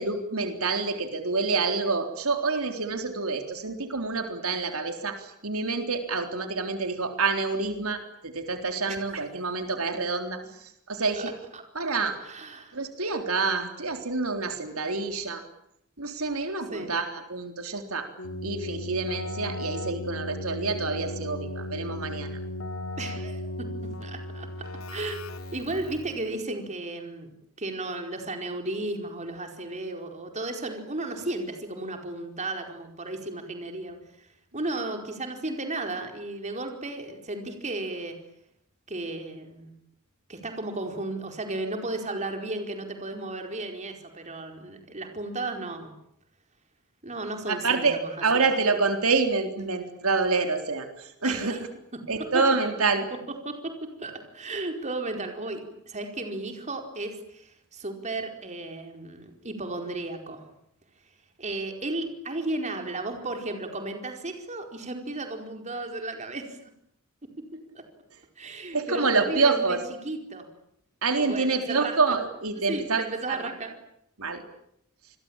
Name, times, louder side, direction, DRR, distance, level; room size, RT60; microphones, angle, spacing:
voice 1, 0.0-10.4 10.9-11.3 11.8-12.2 12.7-15.4 16.0-18.1 18.4-22.3 47.5-51.6 52.1-53.1 68.7-69.8 71.0-73.0 73.3-73.5 74.2-74.4, right 4 dB, 90° right, 5 dB, 3.8 m, -27 dB
voice 2, 12.2-12.8 16.7-16.9 23.0-24.5 24.9-25.2 25.5-34.3 34.5-38.1 38.9-39.7 40.3-45.9 47.0-48.1 51.2-51.6 51.9-52.4 53.4-55.6 55.9-60.4 61.4-66.6 67.7-67.8 68.4-69.8 70.0-70.5 71.2-72.0 72.7-73.7, right 2 dB, 35° right, 4 dB, 4.7 m, -34 dB
Keyboard (musical), 18.2-26.3, left 1 dB, 75° left, 2.8 m, -36 dB
28.5 x 22.0 x 8.9 m, 0.73 s
head